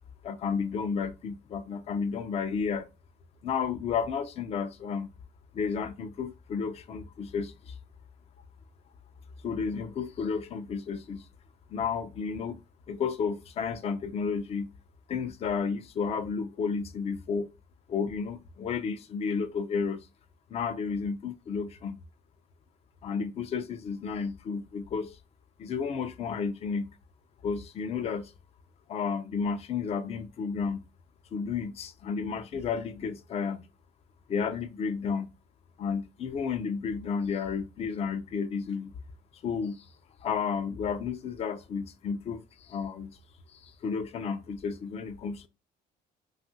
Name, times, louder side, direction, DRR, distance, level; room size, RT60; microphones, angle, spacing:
voice 1, 0.2-2.9 3.4-5.1 5.5-7.8 9.4-11.3 11.7-12.6 12.9-14.7 15.1-17.5 17.9-20.1 20.5-22.0 23.0-25.2 25.6-26.9 27.4-28.3 28.9-30.9 31.3-33.7 34.3-35.3 35.8-38.9 39.4-39.9 40.2-43.2 43.5-45.5, left 5 dB, 40° left, 0.4 m, -32 dB
2.7 x 2.4 x 2.6 m
cardioid pair, 110°, 17 cm